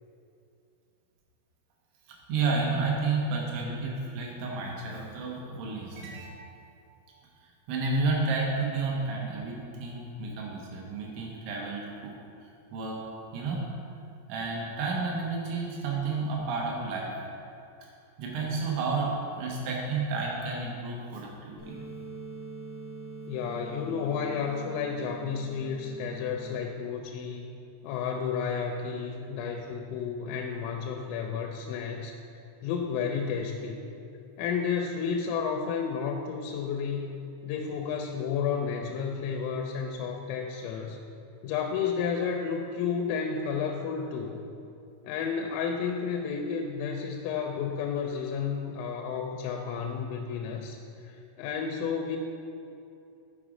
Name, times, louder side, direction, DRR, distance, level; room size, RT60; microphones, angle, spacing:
voice 1, 2.1-6.8 7.7-12.1 12.4-13.0 13.3-13.6 14.3-17.1 17.8-17.9 18.2-21.8, right 3 dB, 75° right, -2 dB, 3.0 m, -31 dB
sound 1, 21.6-26.6, right 3 dB, 55° right, 2.8 m, -43 dB
voice 2, 23.3-27.5 27.8-32.1 32.6-33.8 34.4-37.1 37.4-41.0 41.4-44.4 45.0-50.8 51.0-52.2, left 6 dB, 85° left, 2 dB, 3.2 m, -31 dB
7.2 x 5.3 x 4.9 m, 2.6 s
omnidirectional pair, 6.0 m